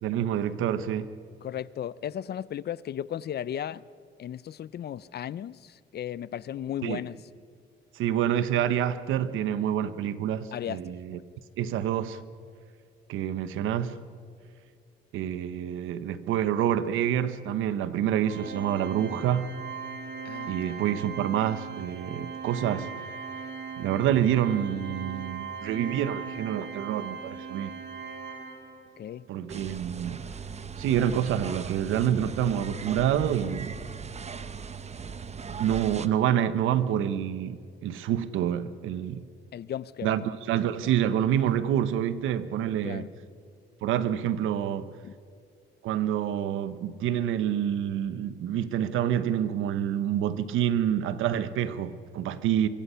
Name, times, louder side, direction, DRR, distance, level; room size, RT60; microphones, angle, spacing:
voice 1, 0.0-1.1 6.8-7.0 7.9-11.2 11.6-12.2 13.1-14.0 15.1-19.5 20.4-22.9 23.8-27.7 29.3-30.3 30.8-33.8 35.6-39.2 40.0-43.1 43.8-44.9 45.8-52.7, right 10 dB, 85° right, 1.1 m, -27 dB
voice 2, 1.4-3.8 4.2-7.2 10.5-10.8 11.1-11.2 20.2-20.8 29.0-29.3 39.5-40.3 42.8-43.1 45.0-45.1, left 10 dB, 55° left, 0.6 m, -35 dB
Organ, 18.3-29.0, right 6 dB, 60° right, 3.2 m, -39 dB
sound 1, 29.5-36.1, right 5 dB, 35° right, 1.0 m, -39 dB
24.5 x 23.5 x 5.7 m
cardioid pair, 90°, 20 cm